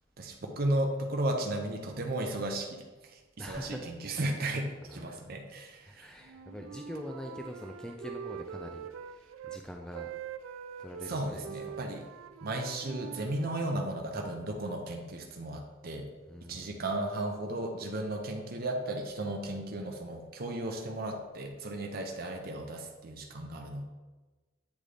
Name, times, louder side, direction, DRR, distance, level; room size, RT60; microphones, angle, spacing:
voice 1, 0.2-2.7 3.0-6.2 11.0-12.1 12.4-16.1 16.5-23.8, right 1 dB, 50° right, 2 dB, 0.6 m, -35 dB
voice 2, 3.4-3.9 4.9-5.0 5.8-10.1 10.8-11.8 16.3-16.7, equal, 5° left, 1 dB, 0.3 m, -43 dB
Wind instrument woodwind instrument, 6.2-9.6 9.9-13.8, right 8 dB, 85° right, 0.3 m, -44 dB
8.2 x 3.8 x 3.3 m, 1.2 s
head